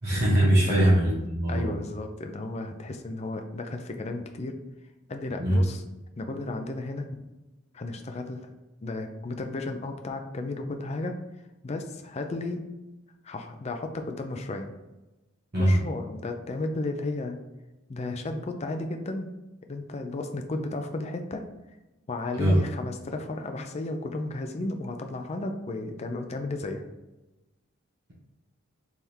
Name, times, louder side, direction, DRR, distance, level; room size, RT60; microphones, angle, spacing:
voice 1, 0.0-1.7 5.4-5.6 15.5-15.8 22.4-22.6, right 1 dB, 45° right, -7 dB, 1.2 m, -22 dB
voice 2, 0.7-1.0 1.5-4.6 5.1-5.8 6.2-7.2 7.7-8.5 8.8-11.2 11.6-12.6 13.2-14.7 15.6-17.4 17.9-19.3 19.7-21.5 22.1-26.8, left 2 dB, 30° left, 5 dB, 0.4 m, -33 dB
3.5 x 3.3 x 4.3 m, 1.0 s
head